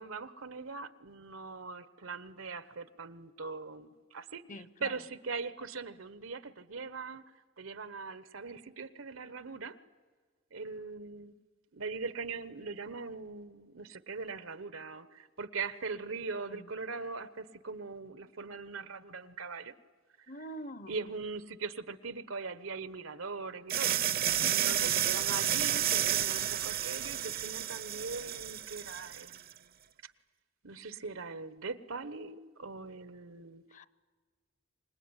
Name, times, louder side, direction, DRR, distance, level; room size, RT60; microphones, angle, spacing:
voice 1, 0.0-9.8 10.5-11.3 11.7-19.7 20.9-29.7 30.0-30.1 30.6-33.6, right 4 dB, 85° right, 1.2 m, -41 dB
voice 2, 4.5-4.9 16.5-16.7 20.3-21.0 24.4-24.8 33.7-33.9, equal, 40° left, 0.8 m, -45 dB
sound 1, 23.7-29.4, right 11 dB, 50° right, 0.7 m, -31 dB
25.5 x 20.5 x 9.8 m
head